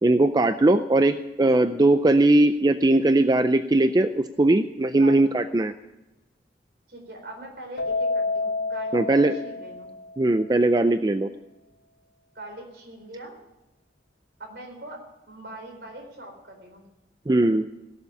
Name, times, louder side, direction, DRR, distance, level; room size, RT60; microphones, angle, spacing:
voice 1, 0.0-5.7 8.9-9.3 10.2-11.3 17.3-17.7, right 2 dB, 20° right, 10 dB, 0.4 m, -20 dB
voice 2, 5.0-5.6 6.9-9.9 12.3-13.4 14.4-16.9, right 1 dB, 65° right, 2 dB, 4.2 m, -42 dB
Keyboard (musical), 7.8-10.3, left 3 dB, 70° left, 1.5 m, -29 dB
17.5 x 7.2 x 9.8 m, 1.0 s
head